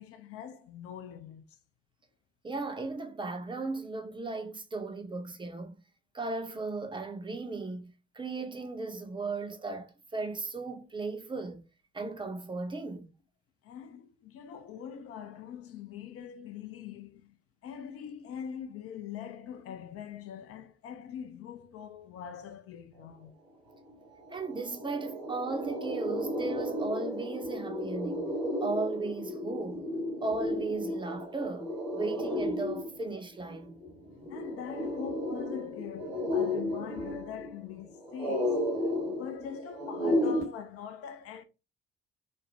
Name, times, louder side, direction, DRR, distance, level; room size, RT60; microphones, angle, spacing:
voice 1, 0.0-1.4 13.6-17.4 17.6-23.3 30.9-31.0 34.3-38.8 39.1-41.4, left 8 dB, 50° left, 0.5 m, -43 dB
voice 2, 2.4-5.8 6.1-11.6 11.9-13.1 24.3-28.3 28.6-29.8 30.2-33.8, right 3 dB, 15° right, 0.5 m, -36 dB
sound 1, 23.9-24.0 24.2-40.4, left 1 dB, 80° right, 1.1 m, -33 dB
3.0 x 2.0 x 2.7 m
figure-of-eight pair, 40°, 30 cm